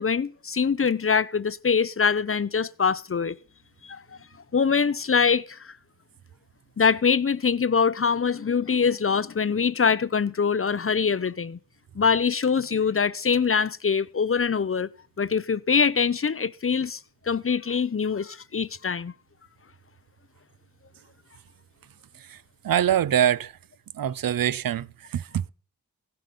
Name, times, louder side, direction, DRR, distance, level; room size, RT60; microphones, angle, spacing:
voice 1, 0.0-3.3 3.8-4.0 4.5-5.7 6.8-11.6 12.0-14.9 15.2-17.0 17.3-19.1, left 6 dB, 40° left, 0.5 m, -24 dB
voice 2, 22.6-23.5 24.0-25.5, right 10 dB, 70° right, 0.5 m, -24 dB
15.5 x 7.6 x 5.3 m
cardioid pair, 40°, 36 cm